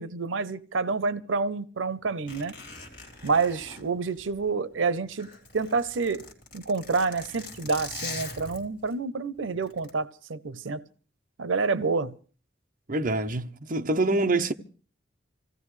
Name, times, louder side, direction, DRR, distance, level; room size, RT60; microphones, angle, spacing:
voice 1, 0.0-2.5 3.2-5.3 5.5-6.2 6.5-10.8 11.4-12.1, right 4 dB, 90° right, 0.7 m, -28 dB
Zipper (clothing), 2.3-4.7 5.0-8.9 9.6-9.9, left 3 dB, 45° left, 4.0 m, -42 dB
voice 2, 12.9-14.5, right 2 dB, 45° right, 0.8 m, -25 dB
25.0 x 16.5 x 3.2 m
head